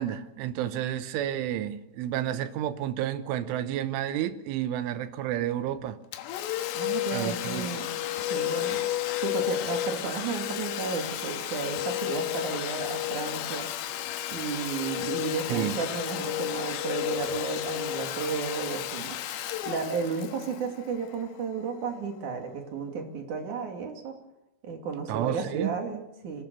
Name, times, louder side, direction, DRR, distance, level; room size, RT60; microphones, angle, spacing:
voice 1, 0.0-6.0 7.1-7.7 15.5-15.8 25.1-25.7, right 11 dB, 75° right, 3.5 m, -30 dB
Domestic sounds home sounds, 6.1-21.6, left 13 dB, 85° left, 3.8 m, -32 dB
voice 2, 6.7-7.9 8.3-8.8 9.2-13.7 14.3-19.2 19.6-24.1 24.6-26.4, right 5 dB, 45° right, 3.2 m, -33 dB
25.5 x 19.0 x 6.9 m
omnidirectional pair, 5.8 m